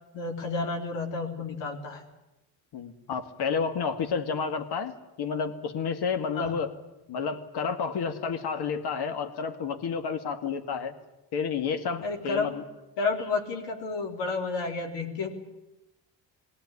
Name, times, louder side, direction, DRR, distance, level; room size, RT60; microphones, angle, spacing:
voice 1, 0.1-2.0 6.3-6.6 12.0-12.5 13.0-15.3, left 4 dB, 80° left, 3 dB, 3.6 m, -31 dB
voice 2, 2.7-6.7 7.1-10.9 11.3-12.6, left 6 dB, 65° left, 9 dB, 2.3 m, -30 dB
20.5 x 17.0 x 9.9 m, 0.99 s
supercardioid pair, 80°, 43 cm